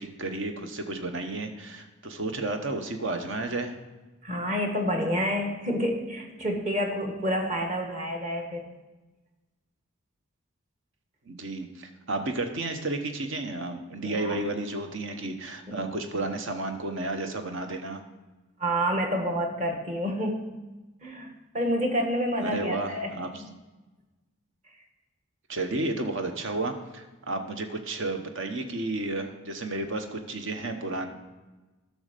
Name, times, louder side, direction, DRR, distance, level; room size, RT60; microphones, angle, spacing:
voice 1, 0.0-3.7 11.3-18.0 22.4-23.4 25.5-31.1, right 2 dB, 55° right, 6 dB, 1.0 m, -32 dB
voice 2, 4.2-8.6 14.0-14.4 15.7-15.8 18.6-20.5 21.0-23.2, equal, 30° right, 3 dB, 1.4 m, -28 dB
11.5 x 6.4 x 5.1 m, 1.2 s
head